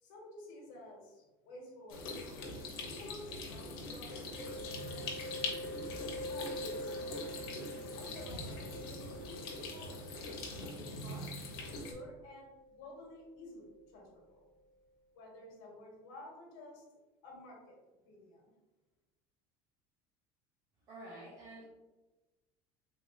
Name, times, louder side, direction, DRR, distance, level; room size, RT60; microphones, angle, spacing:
voice 1, 0.0-5.5 6.2-7.7 8.0-10.3 10.7-14.5 15.1-16.8 17.2-17.8 18.0-18.5, left 1 dB, 70° left, -1 dB, 1.3 m, -52 dB
sound 1, 1.9-11.9, left 2 dB, 90° left, 0.9 m, -42 dB
Mallet percussion, 4.3-13.9, equal, ahead, 0.9 m, -47 dB
voice 2, 20.9-21.6, right 1 dB, 30° right, -5 dB, 0.7 m, -49 dB
3.8 x 3.3 x 2.5 m, 1.1 s
cardioid pair, 180°, 12 cm